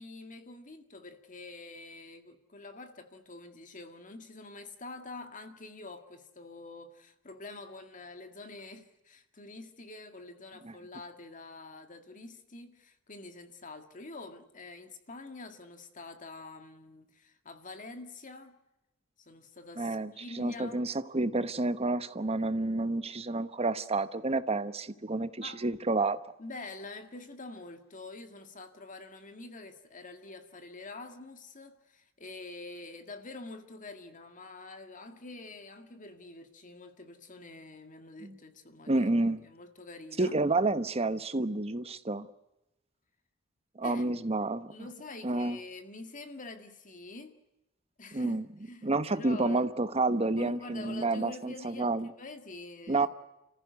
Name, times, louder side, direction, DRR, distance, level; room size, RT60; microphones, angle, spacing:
voice 1, 0.0-18.6 19.2-20.8 25.4-25.6 26.4-39.1 39.4-40.4 43.8-44.1 44.7-47.4 48.0-49.7 50.4-53.1, left 2 dB, 40° left, 2.0 m, -46 dB
voice 2, 19.8-26.2 38.2-38.4 38.9-39.4 40.2-42.3 43.8-44.7 45.2-45.6 48.1-48.4 48.8-52.1 52.9-53.1, right 2 dB, 30° right, 1.1 m, -29 dB
30.0 x 15.0 x 9.4 m
head